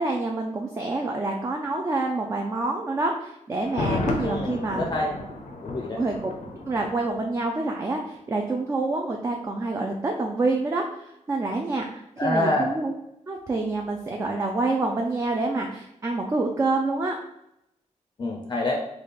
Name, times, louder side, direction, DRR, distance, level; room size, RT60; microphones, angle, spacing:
voice 1, 0.0-4.8 6.0-6.3 6.7-12.9 13.3-17.2, right 2 dB, 25° right, 2 dB, 0.3 m, -27 dB
Thunder, 3.6-7.5 7.8-7.9, left 2 dB, 85° left, 0.5 m, -32 dB
voice 2, 4.2-5.1 5.6-6.0 12.2-12.7 18.2-18.8, left 2 dB, 35° left, 0 dB, 0.5 m, -26 dB
3.3 x 2.3 x 4.1 m, 0.81 s
wide cardioid pair, 130°, 12 cm